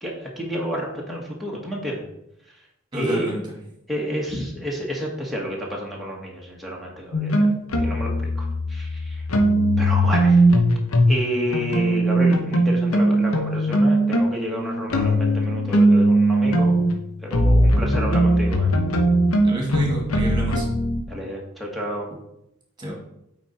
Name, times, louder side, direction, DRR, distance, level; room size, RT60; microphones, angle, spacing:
voice 1, 0.0-2.0 2.9-3.3 3.9-7.5 7.8-9.2 9.8-10.4 11.1-16.9 17.2-18.7 21.1-22.1, equal, ahead, -3 dB, 1.3 m, -30 dB
voice 2, 2.9-3.6 19.4-20.7 22.8-22.9, right 1 dB, 20° right, 0 dB, 1.9 m, -28 dB
sound 1, 7.1-11.2 11.5-21.0, right 1 dB, 85° left, 0.9 m, -19 dB
8.8 x 3.9 x 4.3 m, 0.81 s
head